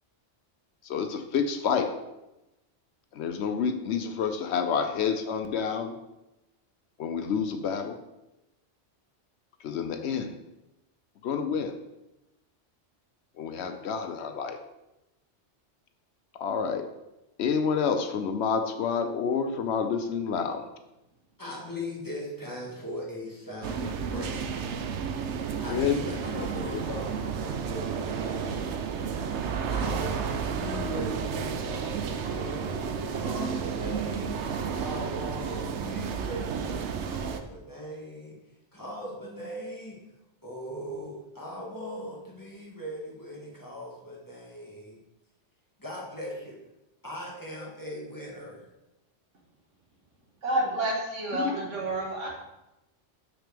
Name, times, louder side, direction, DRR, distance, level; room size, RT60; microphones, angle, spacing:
voice 1, 0.8-1.9 3.1-5.9 7.0-8.0 9.6-10.3 11.2-11.7 13.4-14.6 16.3-16.9 17.4-20.6 25.7-26.0 26.3-26.8, left 6 dB, 70° left, 7 dB, 0.8 m, -28 dB
voice 2, 21.4-24.8 25.6-28.8 29.5-34.3 34.7-38.3 38.7-40.0 40.4-45.0 45.8-46.5 47.0-48.7, left 1 dB, 15° left, -4 dB, 1.7 m, -39 dB
sound 1, 23.6-37.4, right 6 dB, 70° right, 0.9 m, -32 dB
voice 3, 50.4-52.3, right 1 dB, 90° right, -1 dB, 1.9 m, -29 dB
6.5 x 6.1 x 3.4 m, 0.96 s
omnidirectional pair, 1.2 m